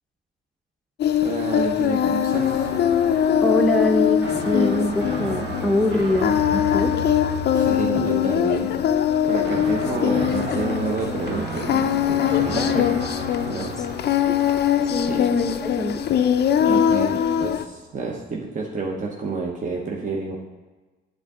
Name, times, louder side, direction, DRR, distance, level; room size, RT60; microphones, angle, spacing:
Singing, 1.0-17.6, left 9 dB, 55° left, 0.4 m, -22 dB
voice 1, 1.2-2.7 7.5-8.8 9.3-12.7 13.5-13.8 15.1-15.2 16.7-20.4, right 4 dB, 40° right, -1 dB, 0.9 m, -29 dB
sound 1, 2.3-18.2, right 1 dB, 70° right, 1.2 m, -34 dB
voice 2, 3.4-6.9 12.5-13.0 14.2-14.4 14.9-16.1, left 1 dB, ahead, 2 dB, 0.7 m, -24 dB
8.4 x 3.7 x 4.8 m, 1.2 s
cardioid pair, 90°, 20 cm